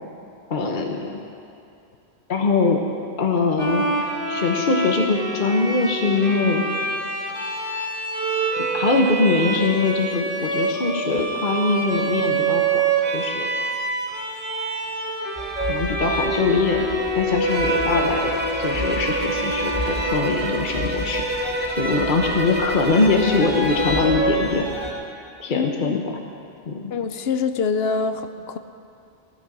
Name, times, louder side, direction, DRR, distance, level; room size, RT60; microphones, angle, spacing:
voice 1, 0.5-1.2 2.3-2.8 3.2-3.8 4.3-6.6 8.6-12.8 13.1-13.5 15.6-16.8 17.2-18.3 18.6-21.5 21.8-24.7 25.4-26.0 26.7-26.9, left 4 dB, 50° left, 2 dB, 1.2 m, -22 dB
Bowed string instrument, 3.6-21.0, right 3 dB, 55° right, 1.9 m, -26 dB
sound 1, 15.4-24.9, equal, 25° left, 2.6 m, -29 dB
Bowed string instrument 2, 17.5-24.2, right 1 dB, 10° right, 0.8 m, -28 dB
voice 2, 25.5-26.0 26.9-28.6, left 5 dB, 70° left, 9 dB, 0.9 m, -25 dB
14.5 x 13.5 x 6.1 m, 2.6 s
omnidirectional pair, 1.1 m